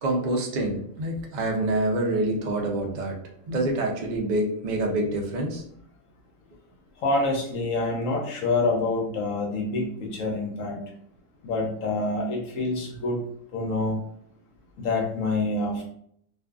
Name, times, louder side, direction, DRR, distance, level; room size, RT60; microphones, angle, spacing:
voice 1, 0.0-3.2 3.5-5.6, right 1 dB, 65° right, 0 dB, 0.4 m, -26 dB
voice 2, 7.0-10.8 11.4-13.2 13.5-14.0 14.8-15.8, left 2 dB, 75° left, 0 dB, 0.9 m, -26 dB
2.5 x 2.3 x 2.3 m, 0.67 s
omnidirectional pair, 1.4 m